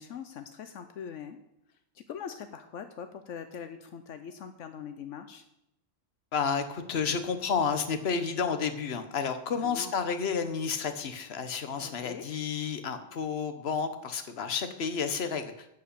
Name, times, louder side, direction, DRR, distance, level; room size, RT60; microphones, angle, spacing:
voice 1, 0.0-1.4 1.9-5.4 9.5-9.9 11.8-12.2, left 7 dB, 80° left, 8 dB, 1.1 m, -42 dB
voice 2, 6.3-15.7, left 6 dB, 60° left, 9 dB, 1.2 m, -31 dB
11.5 x 5.4 x 8.2 m, 0.84 s
omnidirectional pair, 1.3 m